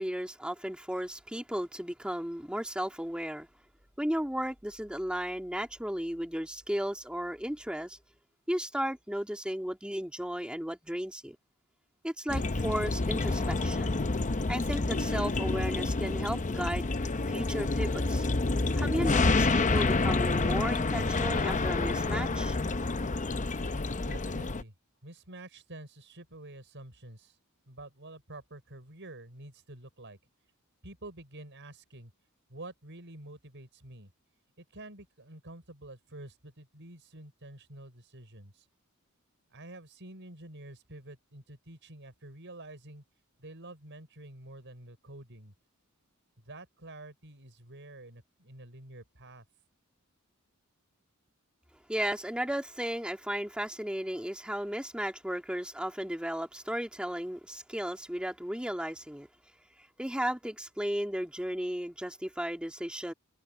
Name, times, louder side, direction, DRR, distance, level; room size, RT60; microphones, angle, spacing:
voice 1, 0.0-3.5 4.0-8.0 8.5-11.4 12.0-14.0 14.5-16.9 17.3-18.3 18.8-22.6 51.9-59.3 60.0-63.1, equal, 5° right, 2.9 m, -34 dB
sound 1, 12.3-24.6, left 3 dB, 35° left, 0.8 m, -28 dB
voice 2, 24.0-24.7 25.0-27.3 27.7-30.2 30.8-32.1 32.5-34.1 34.6-38.6 39.5-43.0 43.4-45.5 46.5-49.4, right 2 dB, 60° right, 6.3 m, -48 dB
head